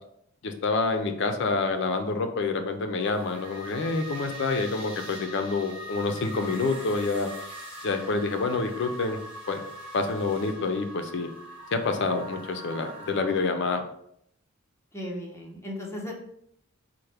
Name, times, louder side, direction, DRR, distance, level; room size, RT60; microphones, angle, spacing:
voice 1, 0.4-7.3 7.8-9.2 9.5-9.6 9.9-11.3 11.7-13.8, left 3 dB, 55° left, 6 dB, 0.4 m, -27 dB
sound 1, 3.0-13.8, equal, 25° right, 1.2 m, -42 dB
voice 2, 14.9-16.1, left 1 dB, 15° left, -1 dB, 0.6 m, -36 dB
4.3 x 2.1 x 3.3 m, 0.71 s
head